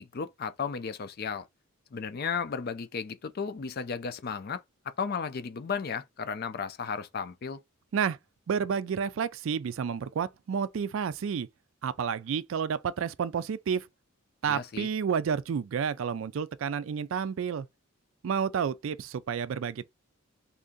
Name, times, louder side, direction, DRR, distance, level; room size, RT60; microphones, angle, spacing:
voice 1, 0.0-1.4 1.9-4.6 5.0-7.6 14.5-14.9, left 6 dB, 45° left, 0.4 m, -34 dB
voice 2, 8.5-11.5 11.8-13.9 14.4-17.7 18.2-19.9, right 7 dB, 65° right, 0.3 m, -30 dB
2.8 x 2.6 x 3.6 m
head